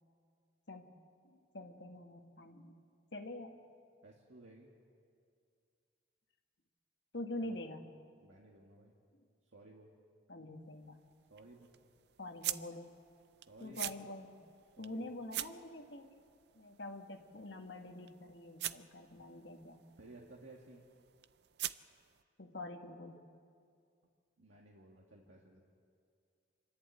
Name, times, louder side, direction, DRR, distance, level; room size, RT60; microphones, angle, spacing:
voice 1, 1.3-2.8 3.1-3.6 7.1-7.9 10.3-11.0 12.2-12.9 13.6-14.4 14.8-16.1 16.5-19.9 22.4-23.2, left 1 dB, 70° left, 3 dB, 1.6 m, -46 dB
voice 2, 4.0-4.7 7.4-7.5 8.2-8.9 9.5-9.9 11.3-11.7 13.5-14.0 14.8-15.0 20.0-20.9 24.4-25.6, right 2 dB, 90° right, -2 dB, 1.9 m, -57 dB
sound 1, 10.6-22.2, right 13 dB, 60° right, 0.5 m, -47 dB
27.0 x 11.5 x 8.5 m, 2.3 s
head